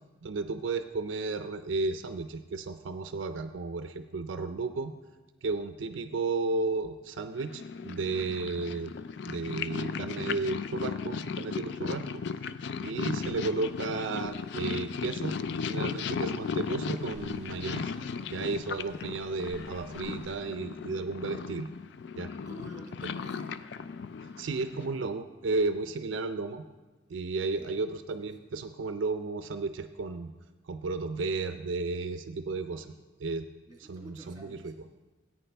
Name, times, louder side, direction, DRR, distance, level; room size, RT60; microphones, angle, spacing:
voice 1, 0.2-4.9 5.4-8.9 9.2-12.2 12.8-15.3 15.7-17.9 18.3-21.7 22.2-22.3 24.2-26.6 27.1-30.3 30.6-32.9 33.2-33.5 33.9-34.7, right 3 dB, 75° right, 9 dB, 0.4 m, -33 dB
Purr, 7.4-25.0, left 5 dB, 60° left, 0.4 m, -36 dB
sound 1, 13.2-20.4, equal, 15° left, 3.0 m, -54 dB
voice 2, 22.4-23.6 27.5-28.4 32.6-33.0 33.7-34.7, right 1 dB, 20° right, 1 dB, 1.4 m, -52 dB
14.0 x 9.0 x 3.4 m, 1.2 s
head